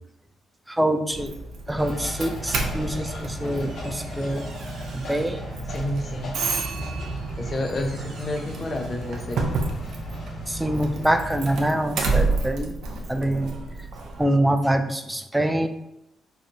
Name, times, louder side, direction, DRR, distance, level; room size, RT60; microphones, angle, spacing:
voice 1, 0.7-1.3 1.7-4.5 4.9-5.4 10.5-12.8 13.1-13.5 14.2-15.7, right 1 dB, 10° right, 7 dB, 0.4 m, -25 dB
Doorbell, 1.1-14.2, right 3 dB, 70° right, 0.5 m, -31 dB
sound 1, 1.8-11.6, equal, 80° left, 1.1 m, -36 dB
voice 2, 5.7-6.3 7.4-9.5, left 1 dB, 40° left, 3 dB, 0.7 m, -29 dB
3.7 x 2.6 x 2.6 m, 0.83 s
supercardioid pair, 55°, 0 cm